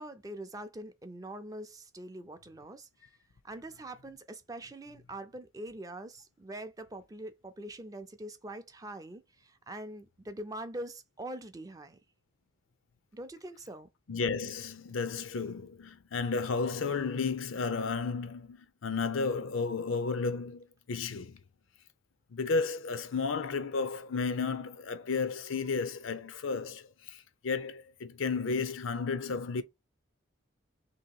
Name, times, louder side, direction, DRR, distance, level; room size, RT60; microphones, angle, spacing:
voice 1, 0.0-3.1 3.4-12.0 13.1-13.9, right 1 dB, 15° right, 0.4 m, -43 dB
voice 2, 14.1-21.4 22.3-29.6, left 4 dB, 80° left, 0.5 m, -33 dB
3.0 x 2.8 x 4.5 m
head